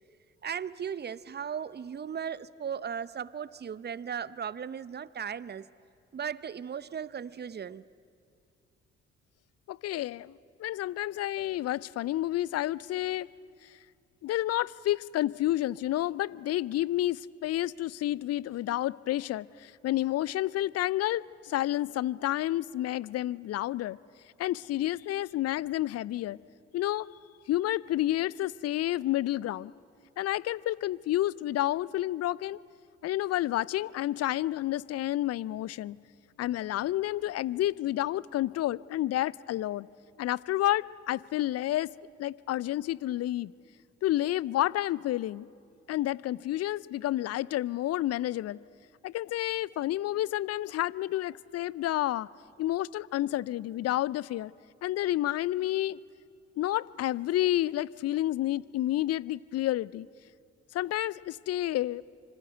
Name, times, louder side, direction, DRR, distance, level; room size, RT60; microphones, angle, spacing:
voice 1, 0.4-5.7 6.1-7.8, right 7 dB, 30° right, 0.8 m, -37 dB
voice 2, 9.7-13.3 13.6-13.7 14.2-24.0 24.4-26.4 26.7-27.1 27.5-29.7 30.2-32.6 33.0-36.0 36.4-39.9 40.2-41.9 42.2-43.5 44.0-45.5 45.9-48.6 49.0-52.3 52.6-54.5 54.8-56.0 56.6-60.1 60.7-62.0, left 14 dB, 50° left, 0.6 m, -30 dB
26.0 x 25.5 x 8.1 m
figure-of-eight pair, 45°, 32 cm